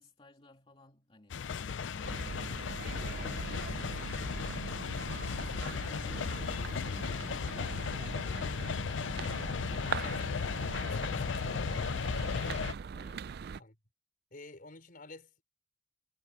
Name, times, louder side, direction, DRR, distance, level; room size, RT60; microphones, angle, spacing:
voice 1, 0.0-8.8 9.3-12.5 12.9-13.3, left 1 dB, 30° left, 2.7 m, -58 dB
sound 1, 1.3-12.7, left 6 dB, 90° left, 0.5 m, -36 dB
Wind instrument woodwind instrument, 1.6-5.3, left 3 dB, 70° left, 2.0 m, -52 dB
sound 2, 2.0-13.6, right 6 dB, 60° right, 0.4 m, -41 dB
voice 2, 10.0-10.3 13.6-13.8 14.3-15.4, left 2 dB, 50° left, 4.6 m, -50 dB
head